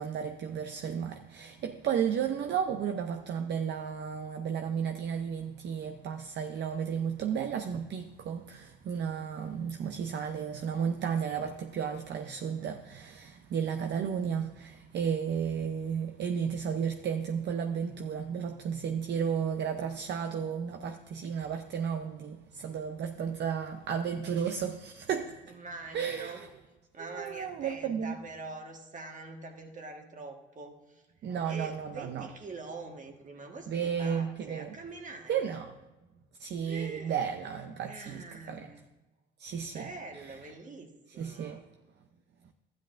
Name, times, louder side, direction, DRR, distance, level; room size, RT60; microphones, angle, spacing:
voice 1, 0.0-25.5 25.9-26.5 27.1-28.2 31.2-32.3 33.7-34.8 35.3-35.8 36.4-38.7 39.4-39.8 40.2-40.4 41.2-41.6, right 7 dB, 60° right, 0.6 m, -33 dB
voice 2, 25.5-26.4 26.9-35.6 36.7-37.3 37.8-38.8 39.7-41.6, right 3 dB, 40° right, 1.5 m, -45 dB
12.5 x 10.5 x 2.5 m
cardioid pair, 90°, 20 cm